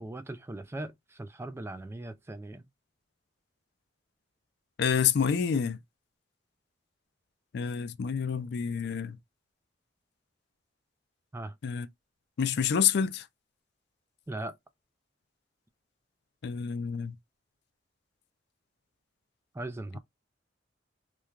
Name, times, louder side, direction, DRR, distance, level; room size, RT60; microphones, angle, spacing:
voice 1, 0.0-2.7 11.3-11.6 14.3-14.6 19.5-20.0, right 2 dB, 15° right, 0.3 m, -39 dB
voice 2, 4.8-5.8 7.5-9.2 11.6-11.9 12.4-13.2 16.4-17.1, left 7 dB, 60° left, 0.4 m, -28 dB
3.0 x 2.2 x 2.4 m
head